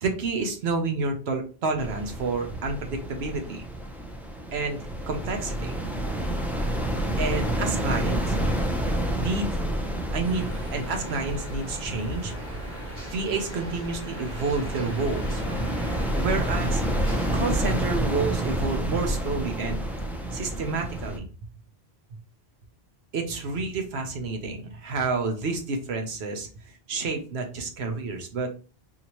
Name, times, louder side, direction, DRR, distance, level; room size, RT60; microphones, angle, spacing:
voice 1, 0.0-3.6 4.5-4.8 5.1-5.8 7.2-8.3 9.2-9.6 10.1-12.3 12.7-12.8 13.1-15.4 16.1-16.8 17.3-19.8 20.3-21.2 23.1-26.5 26.9-28.5, right 3 dB, 90° right, 4 dB, 1.1 m, -29 dB
sound 1, 1.8-21.2, right 1 dB, 5° right, 0.3 m, -29 dB
sound 2, 10.2-17.6, equal, 45° right, 1.9 m, -39 dB
4.1 x 2.8 x 3.0 m, 0.37 s
omnidirectional pair, 1.0 m